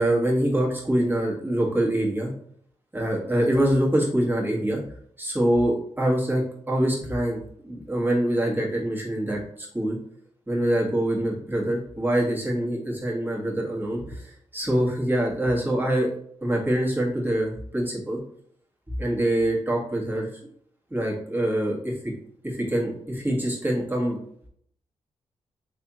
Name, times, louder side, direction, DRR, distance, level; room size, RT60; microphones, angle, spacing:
voice 1, 0.0-2.3 2.9-4.8 5.2-7.4 7.6-10.0 10.5-16.1 16.4-18.2 19.0-20.3 20.9-21.9 22.4-24.2, right 1 dB, 15° right, -3 dB, 1.6 m, -25 dB
3.4 x 3.4 x 2.9 m, 0.65 s
supercardioid pair, 50°, 12 cm